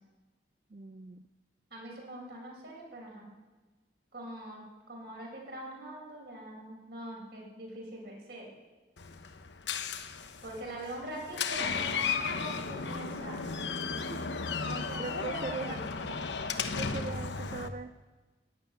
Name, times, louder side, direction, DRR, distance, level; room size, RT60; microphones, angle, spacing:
voice 1, 0.7-1.2 14.1-14.4 15.0-15.8 16.8-17.9, right 4 dB, 40° right, 12 dB, 0.4 m, -40 dB
voice 2, 1.7-3.3 4.1-8.5 10.4-13.4 14.7-16.0, right 1 dB, 60° right, -2 dB, 5.2 m, -43 dB
Door, 9.0-17.7, left 5 dB, 80° left, 1.0 m, -35 dB
15.0 x 7.7 x 9.8 m, 1.3 s
head